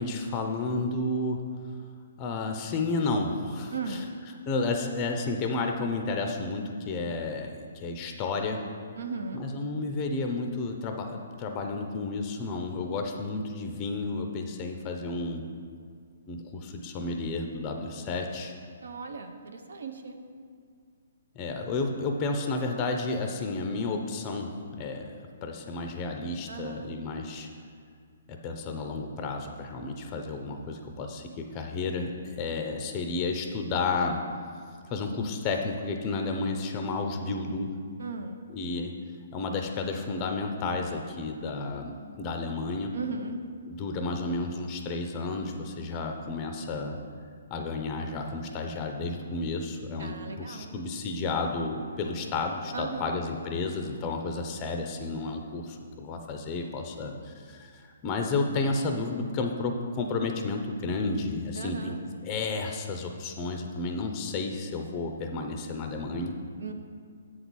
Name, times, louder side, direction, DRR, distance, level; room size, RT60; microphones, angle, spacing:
voice 1, 0.0-1.4 2.2-4.0 4.5-8.6 9.4-15.4 16.3-18.5 21.4-25.1 25.4-27.5 28.3-34.2 34.9-37.7 38.5-38.9 39.3-42.9 43.7-47.0 47.5-62.0 62.2-66.3, left 3 dB, 25° left, 4 dB, 0.5 m, -32 dB
voice 2, 3.7-4.1 9.0-9.4 18.8-20.2 26.5-26.9 38.0-38.4 42.9-43.4 50.0-50.7 52.7-53.1 61.6-62.0 66.6-66.7, right 4 dB, 80° right, 6 dB, 0.8 m, -37 dB
7.7 x 4.0 x 6.2 m, 2.1 s
hypercardioid pair, 160°, 0 cm